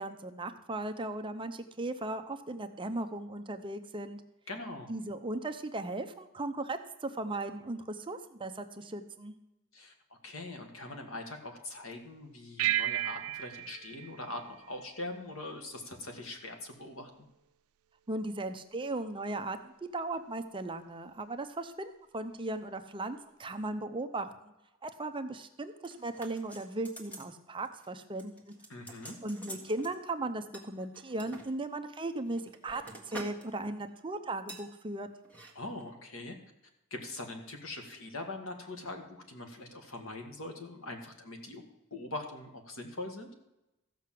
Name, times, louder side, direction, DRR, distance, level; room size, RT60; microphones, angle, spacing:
voice 1, 0.0-4.2 4.9-9.3 18.1-24.5 24.8-28.5 29.2-35.1, right 2 dB, 25° right, 8 dB, 0.6 m, -37 dB
voice 2, 4.5-4.9 9.7-9.9 10.2-17.3 28.7-29.2 35.5-36.4 36.9-41.6 41.9-43.3, left 2 dB, 65° left, 4 dB, 1.8 m, -42 dB
sound 1, 12.6-15.4, right 14 dB, 75° right, 0.4 m, -34 dB
sound 2, 25.8-27.3 27.6-27.9 28.2-29.9 30.5-31.5 32.1-33.5 33.7-34.0 34.5-34.7 35.2-35.5 35.8-35.9, right 1 dB, 5° left, 1.6 m, -47 dB
14.5 x 5.7 x 7.6 m, 0.94 s
head